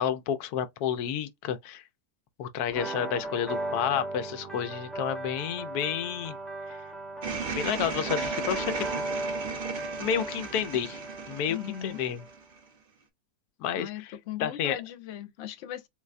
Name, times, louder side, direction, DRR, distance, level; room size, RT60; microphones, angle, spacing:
voice 1, 0.0-1.8 2.4-6.4 6.7-6.8 7.5-9.1 10.0-11.0 11.3-12.2 13.6-14.1 14.4-14.8, left 9 dB, 80° left, 1.1 m, -30 dB
sound 1, 2.7-12.3, right 2 dB, ahead, 0.7 m, -37 dB
sound 2, 7.2-12.6, right 5 dB, 50° right, 0.7 m, -36 dB
voice 2, 11.5-12.0 13.8-15.9, left 11 dB, 60° left, 0.8 m, -38 dB
3.9 x 2.1 x 2.4 m
omnidirectional pair, 1.6 m